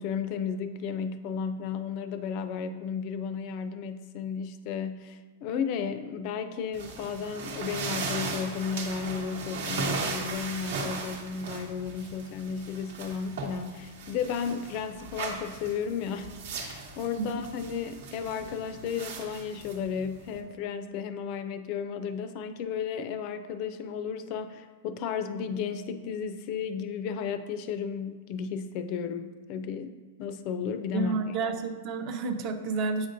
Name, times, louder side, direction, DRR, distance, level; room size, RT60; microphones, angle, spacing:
voice 1, 0.0-29.9 30.2-31.2, left 6 dB, 40° left, 10 dB, 0.4 m, -33 dB
sound 1, 6.7-20.4, right 3 dB, 70° right, 1.1 m, -37 dB
voice 2, 30.9-33.1, right 4 dB, 40° right, 7 dB, 0.5 m, -30 dB
8.0 x 5.1 x 2.6 m, 1.3 s
supercardioid pair, 155°, 0 cm